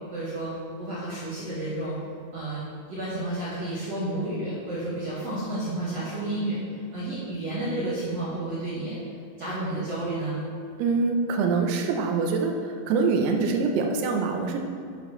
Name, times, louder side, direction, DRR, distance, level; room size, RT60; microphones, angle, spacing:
voice 1, 0.1-0.5 0.8-1.9 2.3-2.6 2.9-6.6 6.9-9.0 9.4-10.4, right 1 dB, 45° right, -10 dB, 2.5 m, -31 dB
voice 2, 10.8-14.6, right 4 dB, 85° right, 3 dB, 2.8 m, -24 dB
12.0 x 8.8 x 3.2 m, 2.4 s
omnidirectional pair, 4.5 m